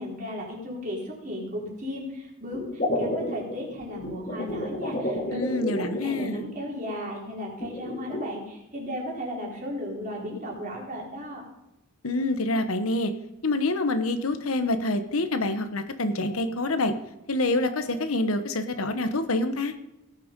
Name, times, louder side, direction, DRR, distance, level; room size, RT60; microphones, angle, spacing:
voice 1, 0.0-5.5 5.8-11.4, equal, 40° right, -2 dB, 3.9 m, -35 dB
sound 1, 2.5-6.7 7.6-8.2, left 1 dB, 35° left, 2.5 m, -31 dB
voice 2, 5.3-6.5 12.0-13.1 13.4-16.9 17.3-19.7, left 2 dB, 85° left, 9 dB, 1.2 m, -26 dB
17.5 x 6.8 x 5.3 m, 0.91 s
head